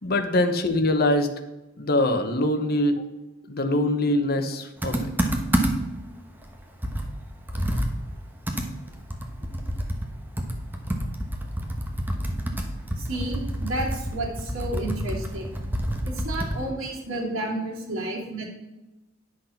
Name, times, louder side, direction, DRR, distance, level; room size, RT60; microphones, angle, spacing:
voice 1, 0.0-1.3 1.8-3.0 3.5-5.3, left 1 dB, 50° left, 6 dB, 1.1 m, -23 dB
Computer keyboard, 4.8-6.0 6.4-6.5 6.8-16.7, equal, 10° right, 1.1 m, -28 dB
voice 2, 13.0-15.6 16.0-18.5, right 1 dB, 65° right, -5 dB, 2.9 m, -31 dB
10.5 x 6.4 x 5.8 m, 1.1 s
head